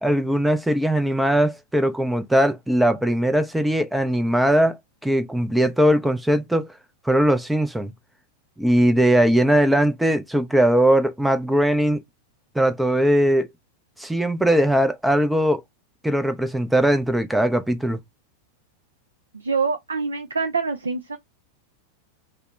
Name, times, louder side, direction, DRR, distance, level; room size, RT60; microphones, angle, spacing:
voice 1, 0.0-4.7 5.0-6.7 7.0-7.9 8.6-12.0 12.5-13.5 14.0-15.6 16.0-18.0, right 1 dB, 5° right, 0.5 m, -20 dB
voice 2, 19.3-21.2, right 4 dB, 75° right, 0.4 m, -25 dB
2.7 x 2.1 x 3.3 m
figure-of-eight pair, 90°, 0 cm